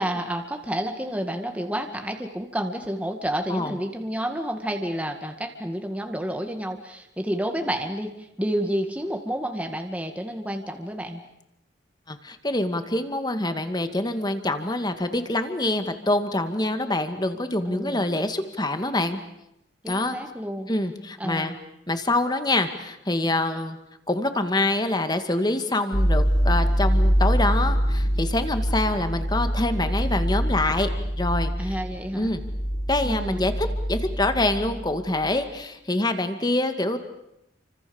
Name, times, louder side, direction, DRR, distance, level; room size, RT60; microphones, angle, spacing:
voice 1, 0.0-11.2 17.7-18.0 19.8-20.7 21.2-21.5 31.6-32.3 33.0-33.4, equal, 5° right, 4 dB, 1.9 m, -30 dB
voice 2, 12.1-19.2 19.9-20.2 20.7-21.6 21.9-23.8 24.1-30.9 31.2-31.7 32.1-32.4 32.9-37.0, left 2 dB, 20° left, 8 dB, 2.1 m, -25 dB
sound 1, 25.9-34.9 35.2-35.4, equal, 45° left, 6.3 m, -24 dB
29.5 x 25.5 x 7.1 m, 0.84 s
head